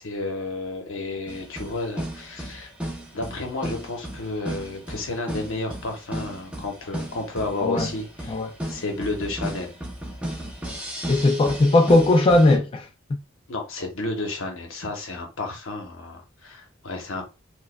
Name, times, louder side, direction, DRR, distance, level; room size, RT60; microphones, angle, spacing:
voice 1, 0.0-2.7 3.1-8.4 8.7-9.7 13.5-17.3, left 2 dB, 70° left, 1.0 m, -31 dB
sound 1, 1.3-12.6, right 1 dB, 5° right, 0.7 m, -35 dB
voice 2, 11.1-12.9, left 2 dB, 25° left, 0.3 m, -18 dB
4.4 x 2.2 x 2.2 m
head